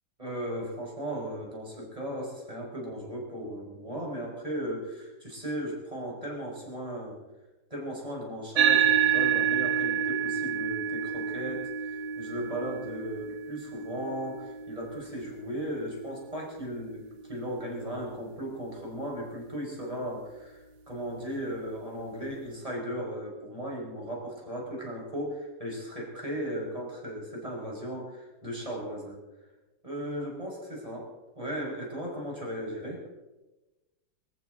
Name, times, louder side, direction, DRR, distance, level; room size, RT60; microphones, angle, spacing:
voice 1, 0.2-7.2 7.7-29.2 29.8-31.1 31.4-33.0, equal, 15° right, -2 dB, 5.5 m, -36 dB
sound 1, 8.6-17.3, right 8 dB, 85° right, 1.7 m, -29 dB
24.5 x 14.5 x 3.9 m, 1.1 s
omnidirectional pair, 2.1 m